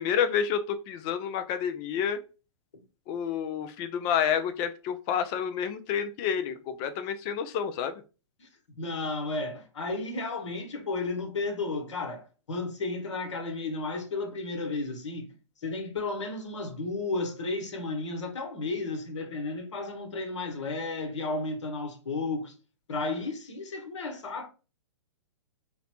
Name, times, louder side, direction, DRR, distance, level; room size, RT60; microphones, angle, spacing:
voice 1, 0.0-2.2 3.1-8.0, left 8 dB, 30° left, 0.4 m, -29 dB
voice 2, 8.8-15.3 15.6-22.5 22.9-24.5, left 3 dB, 70° left, 1.0 m, -33 dB
3.9 x 2.0 x 2.8 m
hypercardioid pair, 120°, 16 cm